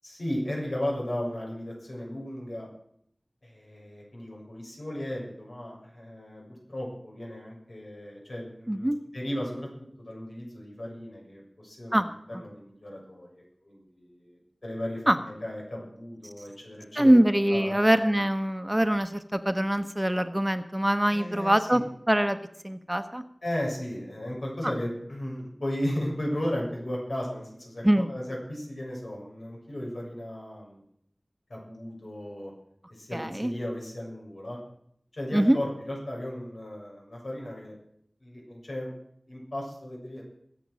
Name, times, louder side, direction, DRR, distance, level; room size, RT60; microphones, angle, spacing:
voice 1, 0.0-2.7 3.4-6.4 6.7-9.7 10.0-17.8 21.1-21.9 23.4-30.8 31.5-32.5 32.9-34.6 35.1-37.7 38.2-38.9 39.3-40.2, left 1 dB, 85° left, -2 dB, 6.9 m, -35 dB
voice 2, 8.7-9.0 11.9-12.1 15.1-15.2 16.9-21.8 22.1-22.4 22.6-23.2 27.8-28.1 33.1-33.5 35.3-35.6, right 1 dB, 15° right, 9 dB, 1.0 m, -23 dB
21.5 x 8.0 x 6.3 m, 0.70 s
wide cardioid pair, 55°, 0 cm